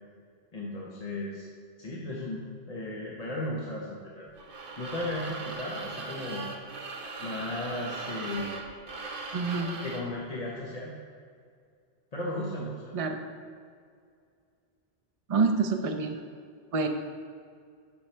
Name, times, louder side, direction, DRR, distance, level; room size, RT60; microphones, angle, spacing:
voice 1, 0.5-1.5 1.8-4.3 4.8-6.5 7.2-8.5 9.8-11.0 12.1-12.9, left 1 dB, 40° left, -4 dB, 1.0 m, -35 dB
sound 1, 4.4-10.1, right 3 dB, 60° right, 1.1 m, -39 dB
voice 2, 9.3-9.8 12.9-13.2 15.3-16.2 16.7-16.9, right 4 dB, 40° right, 6 dB, 0.6 m, -27 dB
12.0 x 4.7 x 4.4 m, 2.2 s
omnidirectional pair, 1.1 m